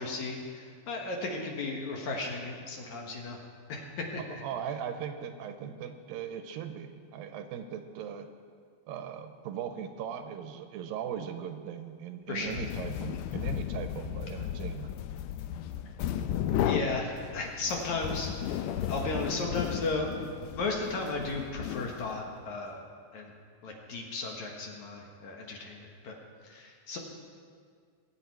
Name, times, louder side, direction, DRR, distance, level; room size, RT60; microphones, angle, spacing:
voice 1, 0.0-3.4 3.7-4.4 12.3-12.6 16.6-20.1 20.5-22.8 23.1-23.3 23.6-26.2 26.4-27.0, left 3 dB, 65° left, 1 dB, 2.2 m, -35 dB
voice 2, 4.3-8.3 8.9-14.9, right 8 dB, 80° right, 7 dB, 2.3 m, -39 dB
sound 1, 12.4-22.4, left 9 dB, 85° left, 1.8 m, -34 dB
21.5 x 8.9 x 4.5 m, 2.1 s
omnidirectional pair, 4.3 m